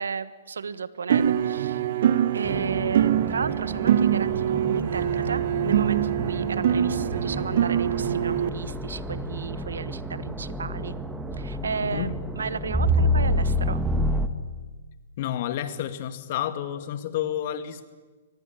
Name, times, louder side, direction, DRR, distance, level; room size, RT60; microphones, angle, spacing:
voice 1, 0.0-1.8 2.3-11.0 11.4-13.8, right 5 dB, 90° right, 16 dB, 1.3 m, -33 dB
sound 1, 1.1-8.5, right 10 dB, 65° right, 1.3 m, -24 dB
sound 2, 2.4-14.3, equal, 5° right, 1.7 m, -29 dB
voice 2, 15.2-17.9, left 11 dB, 50° left, 11 dB, 2.2 m, -30 dB
24.0 x 20.5 x 9.0 m, 1.3 s
hypercardioid pair, 135°, 0 cm